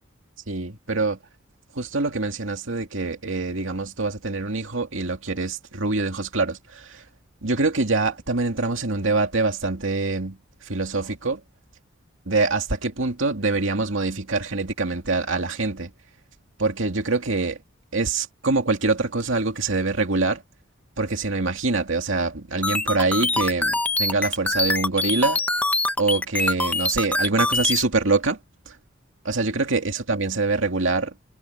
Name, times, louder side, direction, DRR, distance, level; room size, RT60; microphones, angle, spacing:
voice 1, 0.5-1.2 1.7-7.0 7.4-11.4 12.3-15.9 16.6-17.6 17.9-20.4 21.0-25.5 26.0-28.4 28.7-28.8 29.2-31.1, right 3 dB, 75° right, 2.4 m, -25 dB
sound 1, 22.6-27.8, left 2 dB, 10° left, 1.0 m, -24 dB
head